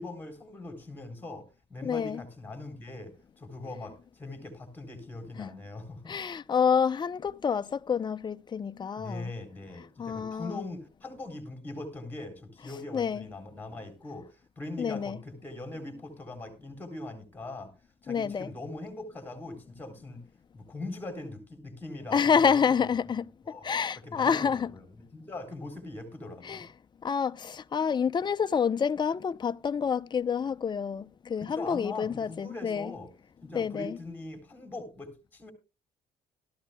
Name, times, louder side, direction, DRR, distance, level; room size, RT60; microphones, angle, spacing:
voice 1, 0.0-6.1 9.0-17.7 18.0-20.2 20.5-22.7 23.4-23.7 24.0-24.8 25.1-26.7 31.4-33.1 33.4-35.5, left 2 dB, 10° left, 4.0 m, -41 dB
voice 2, 1.8-2.2 5.4-5.5 6.1-9.3 10.0-10.6 12.9-13.2 14.8-15.2 18.1-18.5 22.1-23.3 23.6-24.7 26.4-26.7 27.0-32.9 33.5-34.0, left 6 dB, 25° left, 0.6 m, -28 dB
17.5 x 13.5 x 2.3 m
cardioid pair, 110°, 17 cm